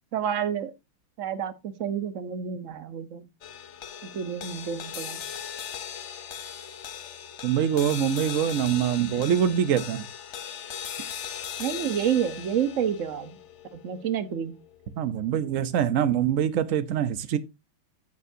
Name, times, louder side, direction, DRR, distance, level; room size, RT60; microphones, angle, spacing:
voice 1, 0.1-0.7 1.2-3.2 4.1-5.2 11.6-13.4 13.7-14.5, right 8 dB, 50° right, 0.9 m, -29 dB
sound 1, 3.4-15.9, left 8 dB, 65° left, 0.7 m, -39 dB
voice 2, 7.4-10.0 15.0-17.4, right 9 dB, 90° right, 0.7 m, -24 dB
15.0 x 6.8 x 2.7 m
omnidirectional pair, 2.3 m